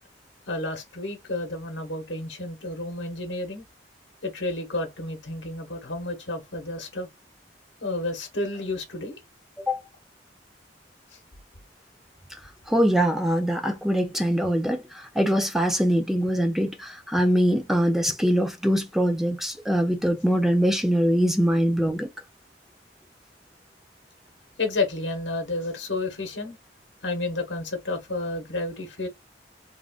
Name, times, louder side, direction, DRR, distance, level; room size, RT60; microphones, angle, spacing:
voice 1, 0.5-3.6 4.2-7.1 7.8-9.2 24.6-26.6 27.0-29.1, left 2 dB, 75° left, 1.2 m, -31 dB
voice 2, 12.7-14.8 15.2-22.1, equal, ahead, 0.4 m, -23 dB
3.6 x 2.4 x 2.3 m
head